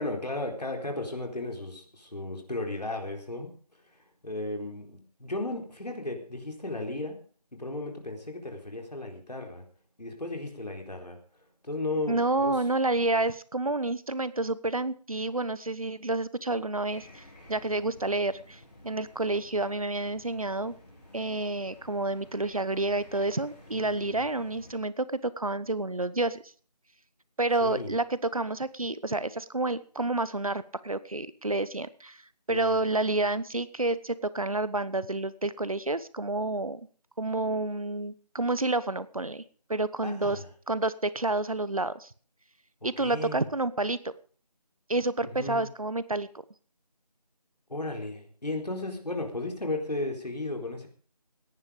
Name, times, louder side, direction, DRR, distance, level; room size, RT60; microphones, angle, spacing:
voice 1, 0.0-3.5 4.2-7.2 7.6-9.6 10.0-11.2 11.6-12.6 23.7-24.2 27.6-27.9 32.5-32.7 40.0-40.5 43.0-43.4 45.2-45.7 47.7-50.9, left 2 dB, 75° left, 2 dB, 4.2 m, -35 dB
voice 2, 12.1-20.7 21.1-26.4 27.4-32.2 32.5-36.8 37.2-39.4 39.7-40.4 40.7-42.1 42.8-44.0 44.9-46.3, right 2 dB, 55° right, 16 dB, 1.0 m, -29 dB
sound 1, 16.9-24.7, left 1 dB, 15° left, 5.3 m, -53 dB
18.0 x 10.5 x 5.1 m, 0.43 s
figure-of-eight pair, 180°, 21 cm